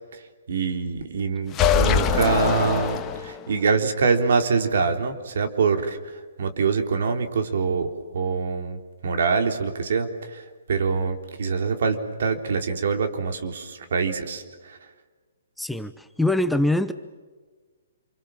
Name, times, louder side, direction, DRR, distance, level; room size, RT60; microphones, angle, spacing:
voice 1, 0.5-6.0 6.4-10.4 10.7-14.8, right 5 dB, 70° right, 5 dB, 3.6 m, -24 dB
sound 1, 1.5-3.6, left 7 dB, 20° left, 1.7 m, -23 dB
voice 2, 15.6-16.9, left 1 dB, ahead, 9 dB, 0.8 m, -23 dB
28.0 x 25.0 x 7.4 m, 1.4 s
hypercardioid pair, 145°, 0 cm